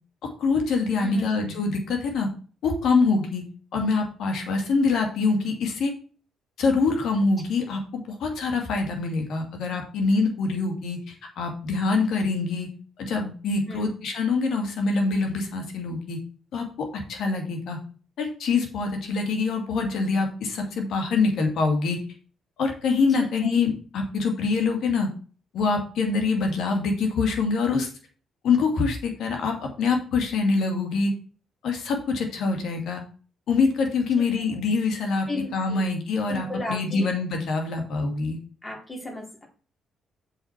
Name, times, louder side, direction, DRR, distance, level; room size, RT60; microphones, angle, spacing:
voice 1, 0.4-2.3 2.6-3.4 3.7-5.9 6.6-12.7 13.0-16.2 16.5-17.8 18.2-22.0 22.6-25.1 25.5-27.9 28.4-31.1 31.6-33.0 33.5-35.3 35.5-38.4, left 4 dB, 75° left, 3 dB, 2.7 m, -25 dB
voice 2, 1.0-1.4 13.7-13.9 23.2-23.6 34.2-34.6 35.3-35.9 36.3-37.1 38.6-39.5, left 2 dB, 20° left, 0 dB, 3.8 m, -35 dB
7.6 x 6.6 x 4.6 m, 0.39 s
cardioid pair, 90°, 0 cm